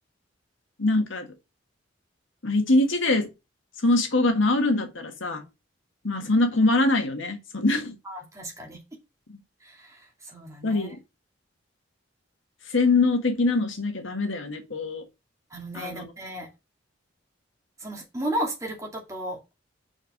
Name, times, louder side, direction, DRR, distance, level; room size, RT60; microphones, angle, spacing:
voice 1, 0.8-1.3 2.4-3.3 3.8-5.4 6.0-8.0 9.3-9.4 10.6-11.0 12.7-15.0 15.7-16.1, left 2 dB, 85° left, 1.7 m, -23 dB
voice 2, 8.1-8.8 9.6-10.9 15.5-16.5 17.8-19.5, right 1 dB, 15° right, 2.4 m, -34 dB
5.5 x 4.6 x 6.0 m
head